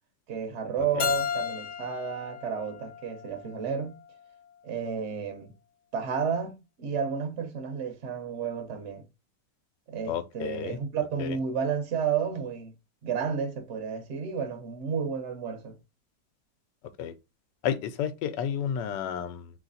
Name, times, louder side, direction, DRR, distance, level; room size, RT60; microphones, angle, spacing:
voice 1, 0.3-4.0 4.6-5.6 5.9-9.0 9.9-12.7 13.0-15.8, right 6 dB, 50° right, 1.0 m, -32 dB
Keyboard (musical), 1.0-3.8, left 8 dB, 60° left, 0.9 m, -33 dB
voice 2, 10.1-10.8 11.2-11.4 17.0-17.1 17.6-19.5, left 9 dB, 85° left, 1.3 m, -31 dB
3.2 x 3.0 x 3.9 m
omnidirectional pair, 1.9 m